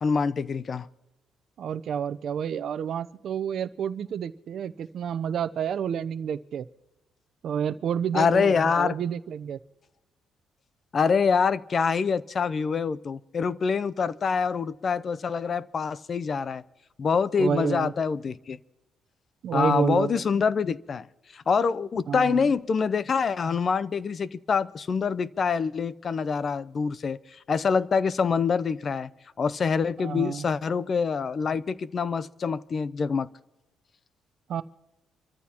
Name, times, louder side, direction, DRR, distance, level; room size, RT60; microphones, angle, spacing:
voice 1, 0.0-0.9 8.1-9.0 10.9-16.6 17.0-18.6 19.5-21.1 21.3-29.1 29.4-33.3, left 5 dB, 45° left, 0.6 m, -25 dB
voice 2, 1.6-6.7 7.4-9.6 17.4-17.9 19.4-20.1 22.1-22.5 30.0-30.4 34.5-34.6, right 8 dB, 65° right, 0.7 m, -29 dB
27.0 x 14.0 x 3.0 m
cardioid pair, 90°, 0 cm